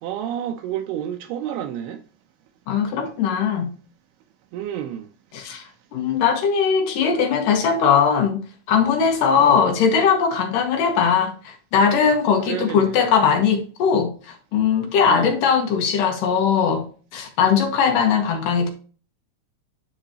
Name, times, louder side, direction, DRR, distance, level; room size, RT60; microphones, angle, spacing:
voice 1, 0.0-2.0 4.5-5.1 9.4-9.7 12.5-13.1 15.1-15.4, right 10 dB, 80° right, 2.6 m, -30 dB
voice 2, 2.7-3.7 5.3-5.6 5.9-18.7, left 6 dB, 70° left, 2.4 m, -20 dB
10.0 x 3.8 x 2.8 m
omnidirectional pair, 4.6 m